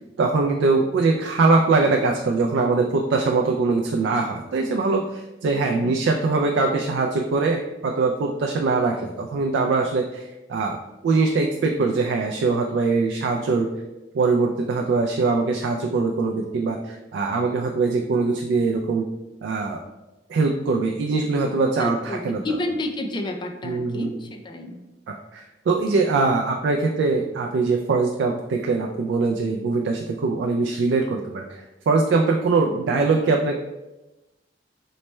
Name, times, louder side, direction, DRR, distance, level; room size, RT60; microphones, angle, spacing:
voice 1, 0.2-10.8 11.0-13.7 14.1-19.0 19.4-19.8 20.3-22.4 23.6-24.1 25.1-33.6, right 3 dB, 75° right, 2 dB, 0.3 m, -22 dB
voice 2, 21.8-24.8 32.7-32.8, left 1 dB, 25° left, 4 dB, 0.3 m, -30 dB
3.1 x 2.1 x 4.1 m, 1.0 s
head